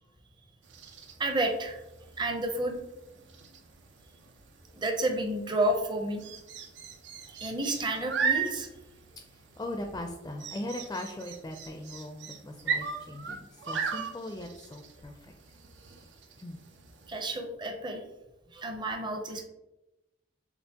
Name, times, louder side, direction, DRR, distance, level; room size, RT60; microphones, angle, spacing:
sound 1, 0.6-17.2, right 6 dB, 85° right, 0.6 m, -38 dB
voice 1, 1.2-1.8 2.2-2.8 4.8-6.2 7.3-8.7 17.1-18.0 18.5-19.4, right 1 dB, 25° right, 3 dB, 0.6 m, -30 dB
voice 2, 9.3-15.2 16.4-16.6, left 1 dB, 20° left, 4 dB, 0.4 m, -39 dB
6.8 x 2.5 x 2.8 m, 0.93 s
head